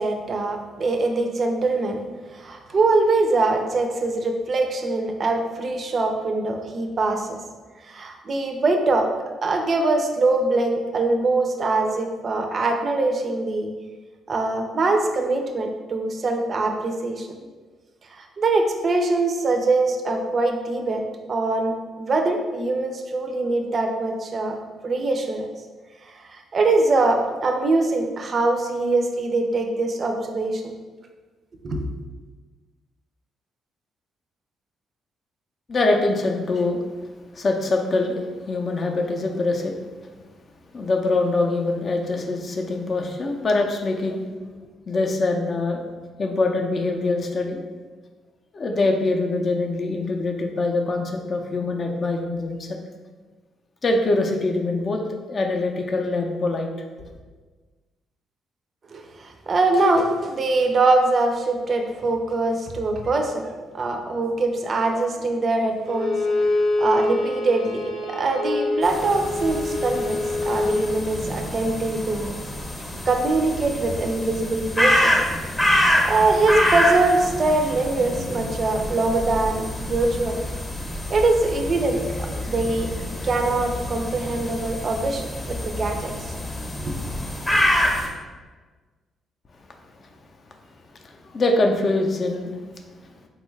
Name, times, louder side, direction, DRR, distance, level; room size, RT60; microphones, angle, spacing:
voice 1, 0.0-2.0 2.3-7.4 7.8-9.1 9.4-13.7 14.3-17.3 18.1-21.0 21.3-24.6 24.8-25.5 26.0-30.6 31.6-31.9 58.9-66.2 66.8-72.4 73.1-75.1 76.0-80.4 81.1-82.9 83.2-86.1 86.8-86.9, right 2 dB, 45° right, 3 dB, 0.4 m, -23 dB
voice 2, 35.7-36.8 37.3-39.8 40.7-44.2 44.9-45.8 46.2-47.6 48.5-52.8 53.8-55.0 55.3-56.7 91.0-92.5, left 2 dB, 45° left, 3 dB, 0.4 m, -23 dB
Bowed string instrument, 65.8-70.9, left 2 dB, 90° left, 0.8 m, -25 dB
sound 1, 68.8-88.1, left 1 dB, 20° left, 0.8 m, -26 dB
3.6 x 2.2 x 3.1 m, 1.4 s
cardioid pair, 90°, 0 cm